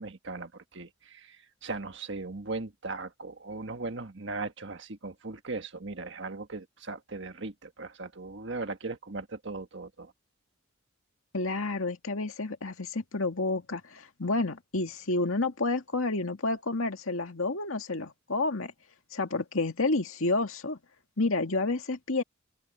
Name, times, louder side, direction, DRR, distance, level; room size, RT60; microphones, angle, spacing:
voice 1, 0.0-1.4 1.6-10.1, right 3 dB, 55° right, 1.6 m, -38 dB
voice 2, 11.3-18.7 19.1-20.8 21.2-22.2, left 2 dB, 70° left, 2.0 m, -30 dB
open air
head